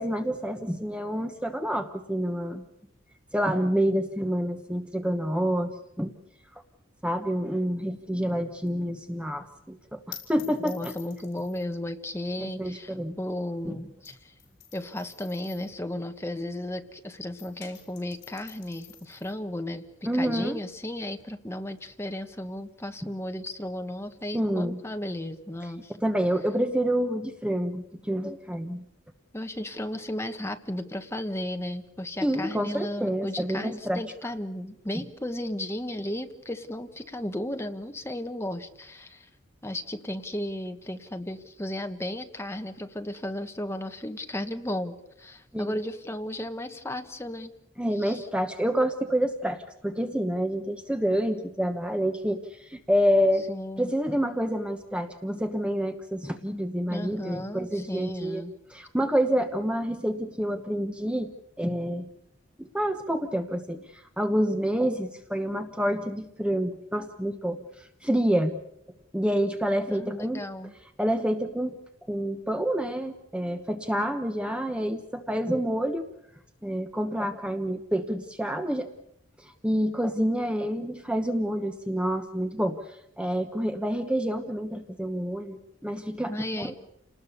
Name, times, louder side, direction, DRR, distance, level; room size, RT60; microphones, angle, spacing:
voice 1, 0.0-2.6 3.3-6.1 7.0-10.9 12.4-13.2 13.6-13.8 20.0-20.6 24.3-24.8 26.0-28.8 32.2-34.0 45.5-45.8 47.8-53.5 53.8-58.4 58.7-61.3 61.6-62.1 62.6-68.6 69.1-70.4 71.0-71.8 72.1-76.1 76.6-78.9 79.4-86.8, equal, 5° right, 6 dB, 1.1 m, -28 dB
sound 1, 8.1-17.0 17.2-24.5, left 10 dB, 60° left, 6.6 m, -51 dB
voice 2, 10.6-14.3 14.7-19.8 20.1-25.9 29.3-39.3 39.6-47.5 48.0-48.3 53.5-53.9 56.9-58.5 69.9-70.7 86.2-86.7, left 1 dB, 15° left, 6 dB, 1.4 m, -34 dB
29.5 x 19.5 x 6.9 m, 0.80 s
head